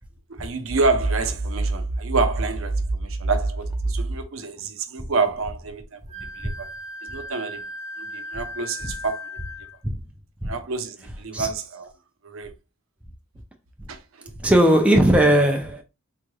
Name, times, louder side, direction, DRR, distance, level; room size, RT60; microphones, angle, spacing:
voice 1, 0.3-6.7 7.0-7.6 8.0-9.3 10.4-11.9 12.2-12.5 13.9-14.3, right 4 dB, 70° right, 0.6 m, -28 dB
sound 1, 0.7-4.2, right 2 dB, 85° left, 2.0 m, -27 dB
Wind instrument woodwind instrument, 6.1-9.8, left 1 dB, 35° left, 1.1 m, -37 dB
voice 2, 14.4-15.8, right 1 dB, 5° right, 0.4 m, -18 dB
3.8 x 3.1 x 2.2 m
head